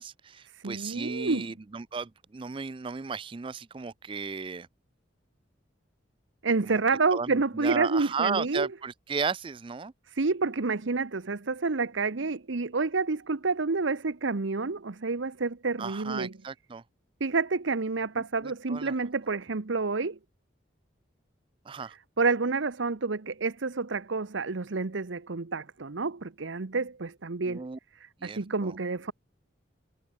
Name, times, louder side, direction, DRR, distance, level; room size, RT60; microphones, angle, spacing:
voice 1, 0.0-4.7 6.6-6.8 7.1-9.9 15.8-16.8 18.2-18.9 21.7-22.0 27.5-27.8 28.2-28.8, right 5 dB, 25° right, 0.4 m, -35 dB
voice 2, 0.6-1.5 6.4-8.7 10.2-16.3 17.2-20.2 22.2-27.7 28.2-29.1, right 4 dB, 75° right, 0.9 m, -29 dB
head